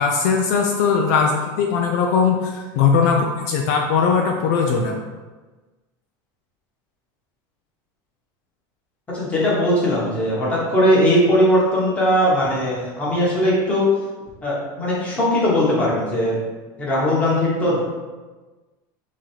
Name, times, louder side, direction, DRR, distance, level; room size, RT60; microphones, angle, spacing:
voice 1, 0.0-4.9, left 5 dB, 60° left, 1 dB, 0.5 m, -19 dB
voice 2, 9.1-13.9 14.4-16.4 16.8-17.8, equal, 10° left, -6 dB, 1.2 m, -19 dB
3.9 x 3.1 x 4.4 m, 1.3 s
supercardioid pair, 170°, 11 cm